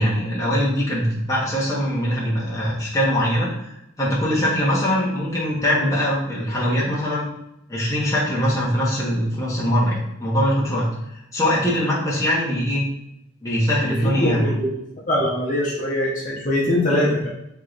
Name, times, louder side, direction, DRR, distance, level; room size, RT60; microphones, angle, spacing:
voice 1, 0.0-7.2 7.7-10.9 11.3-12.8 13.4-14.4, equal, 15° left, -7 dB, 1.0 m, -22 dB
voice 2, 13.8-14.7 15.1-17.3, left 1 dB, 40° left, -4 dB, 1.0 m, -22 dB
3.6 x 3.3 x 3.9 m, 0.82 s
head